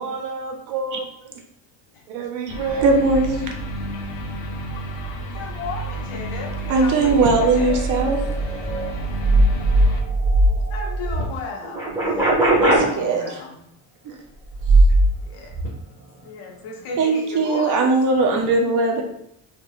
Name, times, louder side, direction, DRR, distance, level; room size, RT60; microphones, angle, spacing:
voice 1, 0.0-1.3 2.1-3.2, right 4 dB, 75° right, 1 dB, 0.8 m, -29 dB
sound 1, 2.5-10.0, right 2 dB, 60° left, 0.6 m, -31 dB
voice 2, 2.8-3.5 6.7-8.2 12.6-13.4 14.0-14.2 17.0-19.0, right 3 dB, 40° right, 3 dB, 0.4 m, -19 dB
voice 3, 5.3-8.1 10.7-13.6 15.2-15.5 16.2-17.9, left 4 dB, 85° left, 0 dB, 1.0 m, -35 dB
sound 2, 7.0-11.2 11.6-12.8 14.5-15.1 15.5-15.7, right 1 dB, 5° right, 1.2 m, -19 dB
3.4 x 2.8 x 2.4 m, 0.73 s
cardioid pair, 175°, 48 cm